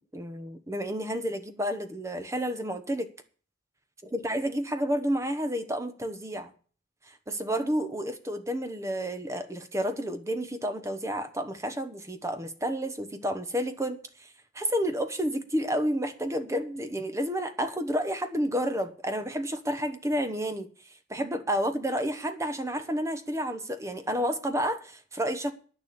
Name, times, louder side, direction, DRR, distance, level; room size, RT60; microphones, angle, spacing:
voice 1, 0.1-3.1 4.1-6.5 7.1-14.3 14.5-20.7 21.1-25.5, equal, 15° right, 1.1 m, -30 dB
10.0 x 6.8 x 8.5 m
head